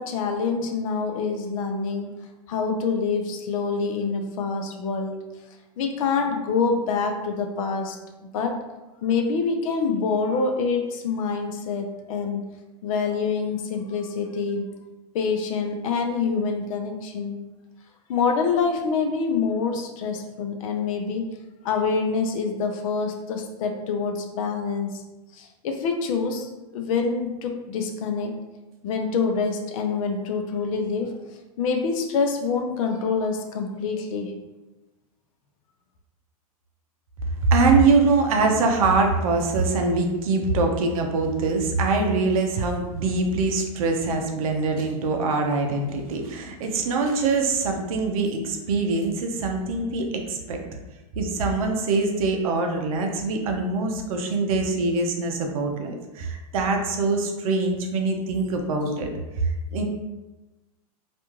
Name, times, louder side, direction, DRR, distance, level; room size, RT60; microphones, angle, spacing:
voice 1, 0.0-2.1 2.5-5.2 5.8-8.0 8.3-8.6 9.0-12.4 12.8-14.6 15.1-17.4 18.1-21.3 21.6-24.9 25.3-28.4 28.8-31.2 31.6-34.4, left 5 dB, 60° left, 3 dB, 0.5 m, -26 dB
voice 2, 37.4-50.6 51.2-59.1 59.4-59.8, right 3 dB, 65° right, 3 dB, 0.5 m, -23 dB
2.4 x 2.2 x 3.0 m, 1.1 s
hypercardioid pair, 120°, 19 cm